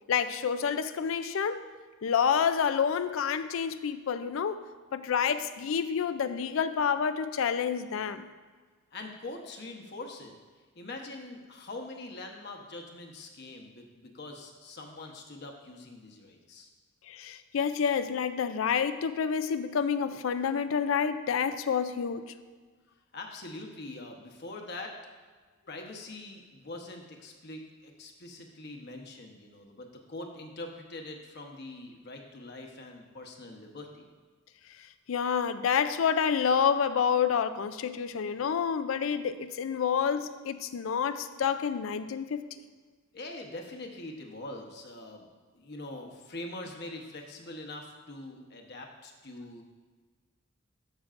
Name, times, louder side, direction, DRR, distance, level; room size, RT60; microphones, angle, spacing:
voice 1, 0.1-1.7 2.0-4.6 4.9-8.3 17.1-22.3 35.1-42.4, left 7 dB, 85° left, 11 dB, 0.4 m, -28 dB
voice 2, 8.9-10.3 10.7-16.7 23.1-24.9 25.7-34.1 43.1-49.6, left 2 dB, 55° left, 2 dB, 1.0 m, -43 dB
13.0 x 6.0 x 2.5 m, 1.4 s
head